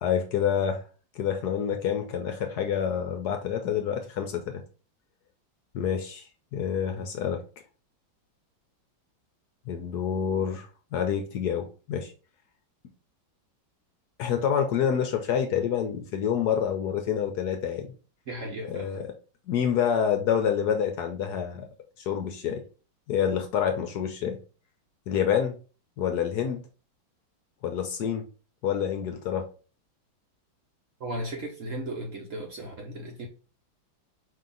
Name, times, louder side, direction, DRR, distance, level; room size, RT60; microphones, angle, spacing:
voice 1, 0.0-0.8 1.1-4.6 5.7-6.3 6.5-7.4 9.7-12.1 14.2-17.9 18.7-19.1 19.5-21.7 22.0-22.6 23.1-24.4 25.1-25.5 26.0-26.6 27.6-28.2 28.6-29.5, left 8 dB, 65° left, 5 dB, 1.1 m, -27 dB
voice 2, 18.3-18.9 31.0-33.3, right 1 dB, 55° right, 2 dB, 1.0 m, -36 dB
4.9 x 2.9 x 3.8 m, 0.36 s
omnidirectional pair, 2.1 m